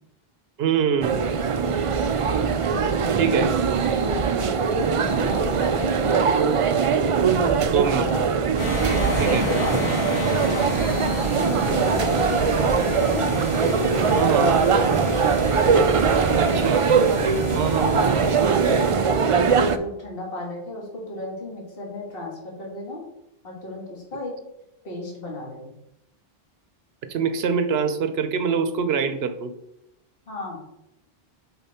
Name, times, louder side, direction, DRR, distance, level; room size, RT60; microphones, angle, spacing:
voice 1, 0.6-1.2 3.2-3.5 7.7-8.1 9.2-9.5 14.1-14.6 16.4-16.8 17.5-18.3 27.0-29.5, right 6 dB, 75° right, 10 dB, 0.9 m, -24 dB
sound 1, 1.0-19.8, right 6 dB, 55° right, 0.3 m, -21 dB
voice 2, 1.8-2.2 2.7-3.4 4.0-6.5 7.0-8.3 8.7-13.3 13.9-14.5 16.3-16.6 18.7-23.0 23.4-24.3 24.8-25.7 30.3-30.7, left 2 dB, 65° left, -2 dB, 1.9 m, -34 dB
sound 2, 8.6-18.9, equal, 85° left, 1.9 m, -28 dB
6.9 x 4.6 x 4.3 m, 0.85 s
omnidirectional pair, 1.0 m